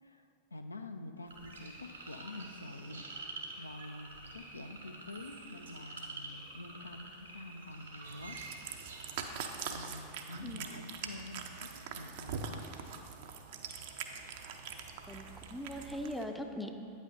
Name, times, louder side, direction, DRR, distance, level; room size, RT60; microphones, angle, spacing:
voice 1, 0.0-8.4 9.7-12.7 14.2-14.8, left 2 dB, 80° left, 6 dB, 0.4 m, -47 dB
sound 1, 1.3-9.6, right 3 dB, 75° right, 1.0 m, -48 dB
Cat, 8.0-16.2, right 6 dB, 55° right, 0.5 m, -43 dB
voice 2, 15.1-16.8, equal, 5° left, 5 dB, 0.5 m, -40 dB
9.1 x 8.1 x 2.6 m, 2.6 s
figure-of-eight pair, 90°, 0 cm